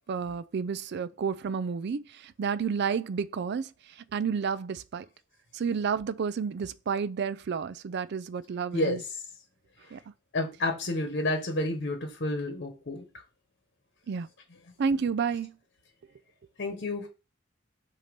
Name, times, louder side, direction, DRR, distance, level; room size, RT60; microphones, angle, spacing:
voice 1, 0.1-3.7 4.1-5.1 5.5-9.0 9.9-10.0 14.1-14.3 14.8-15.5, right 6 dB, 60° right, 0.4 m, -30 dB
voice 2, 8.7-9.2 10.3-13.0 16.6-17.1, left 1 dB, 55° left, 1.1 m, -30 dB
8.1 x 2.9 x 5.2 m
head